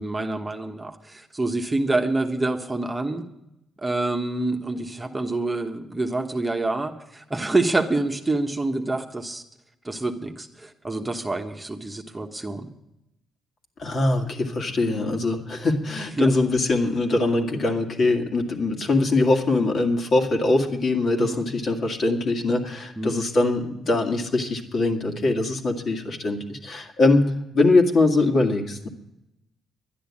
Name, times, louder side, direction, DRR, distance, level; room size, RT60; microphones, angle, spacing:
voice 1, 0.0-3.3 3.8-9.4 9.8-12.7 14.9-15.2 16.2-16.3 21.2-21.4 23.0-23.2, right 2 dB, 15° right, 3 dB, 1.2 m, -27 dB
voice 2, 13.8-27.2 27.5-28.9, left 2 dB, 50° left, 3 dB, 2.1 m, -22 dB
11.5 x 10.0 x 8.6 m, 0.87 s
cardioid pair, 90°, 0 cm